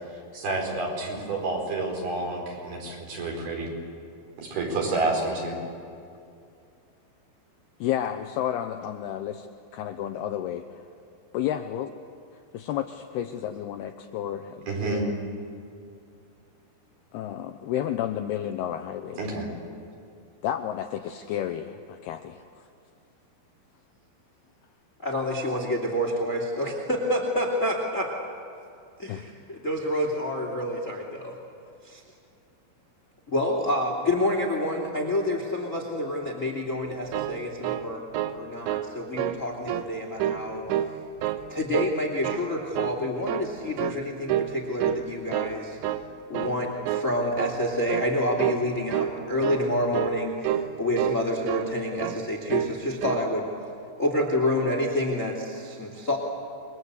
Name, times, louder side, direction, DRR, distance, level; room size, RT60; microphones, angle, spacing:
voice 1, 0.3-3.7 4.4-5.6 14.7-15.0 19.2-19.5, right 3 dB, 55° right, 0 dB, 6.3 m, -29 dB
voice 2, 7.8-9.5 9.7-10.7 11.3-11.9 12.5-15.2 17.1-19.3 20.4-22.6 29.1-29.3, left 11 dB, 80° left, 7 dB, 2.4 m, -31 dB
voice 3, 25.0-28.1 29.0-31.4 31.8-32.0 33.3-38.0 38.3-40.6 41.2-45.8 46.3-53.5 54.0-56.2, left 1 dB, 25° left, 1 dB, 2.1 m, -28 dB
sound 1, 36.9-38.4 38.7-38.9 39.2-39.9 40.2-40.9 41.2-42.0 42.2-42.5 42.8-43.5 43.8-44.0 44.3-44.6 44.8-45.6 45.8-46.1 46.3-46.6 46.9-47.1 47.4-47.6 47.9-48.1 48.4-48.6 48.9-49.1 49.4-49.6 49.9-50.2 50.4-50.7 51.0-51.7 52.0-52.2 52.5-52.8 53.0-53.3, right 12 dB, 80° right, 3.2 m, -28 dB
27.5 x 22.5 x 8.2 m, 2.5 s
omnidirectional pair, 5.4 m